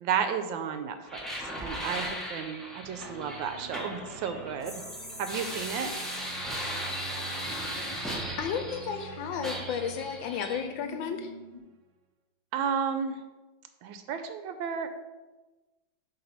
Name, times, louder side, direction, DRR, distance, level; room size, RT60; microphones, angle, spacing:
voice 1, 0.0-4.8 5.2-5.9 12.5-13.2 13.8-14.9, right 7 dB, 90° right, 8 dB, 1.4 m, -32 dB
sound 1, 1.1-9.1 9.4-10.6, equal, ahead, 0.6 m, -37 dB
sound 2, 2.8-11.7, right 5 dB, 70° right, 1.4 m, -46 dB
sound 3, 3.1-6.5 9.2-9.7 10.0-10.1 10.5-11.6, left 1 dB, 35° left, 2.1 m, -50 dB
voice 2, 8.4-11.3, left 7 dB, 80° left, 5 dB, 1.3 m, -33 dB
8.1 x 3.3 x 5.8 m, 1.2 s
omnidirectional pair, 2.1 m